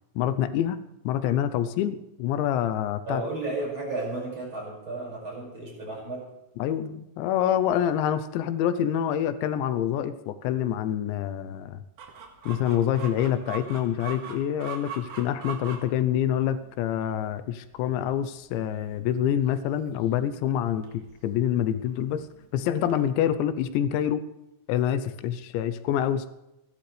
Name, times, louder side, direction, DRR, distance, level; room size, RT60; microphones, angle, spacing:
voice 1, 0.2-0.8 1.1-3.2 6.6-11.8 12.5-20.9 21.2-22.3 22.5-24.3 24.7-26.3, left 10 dB, 90° left, 11 dB, 3.1 m, -26 dB
voice 2, 3.0-6.3, right 2 dB, 25° right, -3 dB, 6.3 m, -33 dB
Chicken rooster, 12.0-23.1, right 6 dB, 65° right, 3.6 m, -43 dB
28.5 x 12.0 x 3.4 m, 0.93 s
omnidirectional pair, 5.1 m